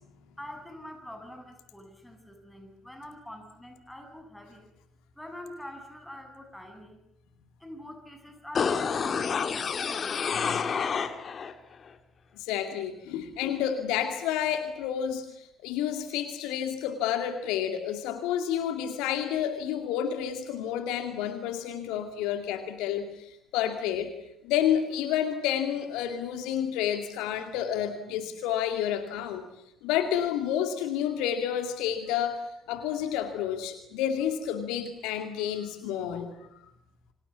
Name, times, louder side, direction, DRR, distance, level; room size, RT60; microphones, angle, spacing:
voice 1, 0.3-4.7 5.1-7.0 7.6-11.0, left 1 dB, 5° left, 6 dB, 7.9 m, -45 dB
sound 1, 8.5-11.5 11.9-12.0, left 6 dB, 40° left, 2.1 m, -29 dB
voice 2, 12.3-24.1 24.4-29.4 29.8-32.4 32.7-36.3, left 9 dB, 65° left, 7 dB, 2.3 m, -30 dB
28.5 x 25.5 x 7.4 m, 0.82 s
figure-of-eight pair, 50°, 0 cm